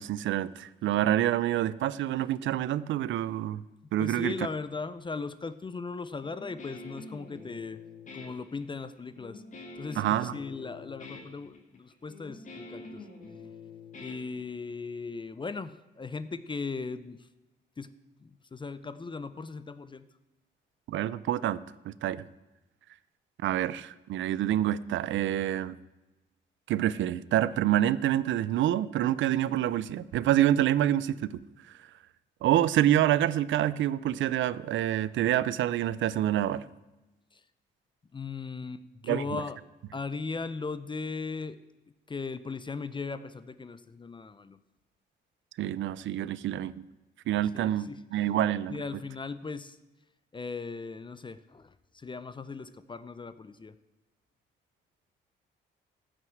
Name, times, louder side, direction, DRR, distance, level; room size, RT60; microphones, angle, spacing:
voice 1, 0.0-3.6 3.9-4.3 10.0-10.4 20.9-22.2 23.4-25.8 26.7-31.4 32.4-36.6 39.1-39.4 45.6-46.8 47.3-48.7, right 12 dB, 70° right, 18 dB, 0.5 m, -27 dB
voice 2, 4.0-7.8 8.1-9.4 9.8-13.1 14.0-17.3 17.8-17.9 18.2-20.1 37.3-37.4 38.1-39.6 39.9-41.6 42.1-44.6 47.5-48.0 48.7-49.8 50.3-53.7, left 4 dB, 25° left, 14 dB, 0.6 m, -38 dB
Guitar, 6.2-14.9, left 3 dB, 40° left, 2.8 m, -46 dB
14.5 x 6.3 x 8.0 m, 1.1 s
cardioid pair, 90°, 20 cm